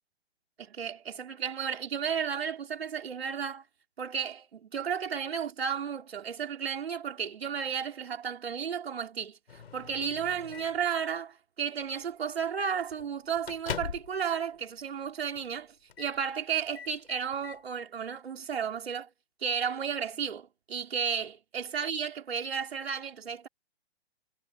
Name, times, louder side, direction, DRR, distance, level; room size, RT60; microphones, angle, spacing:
voice 1, 0.6-3.6 4.0-9.4 9.7-19.1 19.4-23.5, right 7 dB, 65° right, 4.1 m, -33 dB
Microwave oven, 9.5-10.9 11.8-12.0 12.4-12.5 12.9-14.3 14.6-14.7 15.3-15.6 15.9-16.2 16.6-17.6, left 7 dB, 65° left, 5.4 m, -42 dB
figure-of-eight pair, 120°, 33 cm